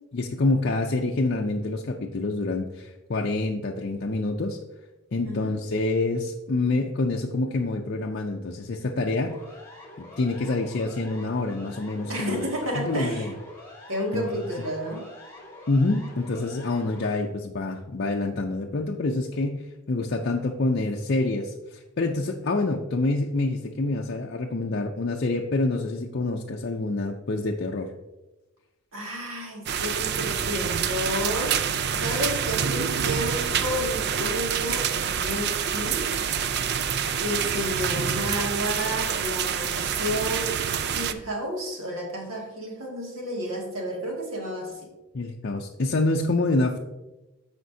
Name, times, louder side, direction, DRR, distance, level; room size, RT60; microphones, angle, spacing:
voice 1, 0.1-4.6 5.1-9.3 10.0-12.4 12.8-13.3 14.1-14.3 15.7-27.9 45.1-46.8, left 2 dB, 50° left, 1 dB, 0.5 m, -27 dB
Siren, 9.2-17.1, left 2 dB, 10° left, 1.6 m, -46 dB
voice 2, 12.1-13.3 13.9-15.1 28.9-36.3 37.2-40.6 40.8-44.9, equal, 70° right, -1 dB, 2.1 m, -31 dB
sound 1, 29.7-41.1, right 7 dB, 50° right, 0.4 m, -27 dB
14.0 x 5.1 x 2.7 m, 1.0 s
head